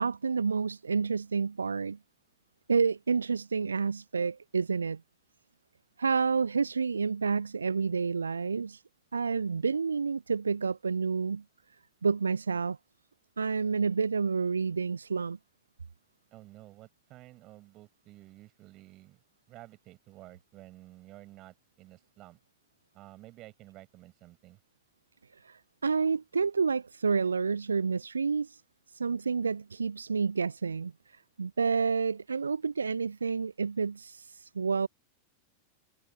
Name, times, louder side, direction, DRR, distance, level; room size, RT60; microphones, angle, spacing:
voice 1, 0.0-2.0 2.7-5.0 6.0-8.8 9.1-11.4 12.0-12.8 13.4-15.4 25.4-28.6 28.9-34.9, right 5 dB, 75° right, 0.6 m, -29 dB
voice 2, 16.3-19.2 19.5-22.4 22.9-24.6, right 17 dB, 35° right, 5.9 m, -52 dB
figure-of-eight pair, 90°, 0 cm